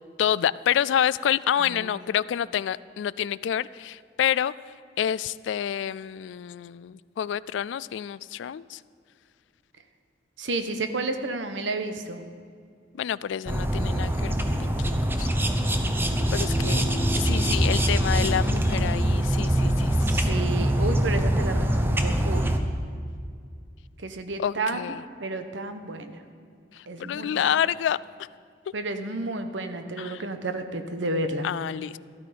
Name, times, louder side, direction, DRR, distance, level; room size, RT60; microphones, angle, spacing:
voice 1, 0.2-4.5 5.0-8.8 12.9-15.3 16.3-16.8 17.2-20.3 24.4-25.0 26.7-28.0 30.0-30.2 31.4-32.0, left 9 dB, 80° left, 18 dB, 0.3 m, -28 dB
voice 2, 1.6-1.9 10.4-12.3 20.0-22.5 24.0-24.9 25.2-26.2 26.9-27.5 28.7-31.5, right 2 dB, 90° right, 8 dB, 1.0 m, -31 dB
sound 1, 13.5-22.6, right 1 dB, 10° right, 0.8 m, -24 dB
13.5 x 13.0 x 5.1 m, 2.2 s
head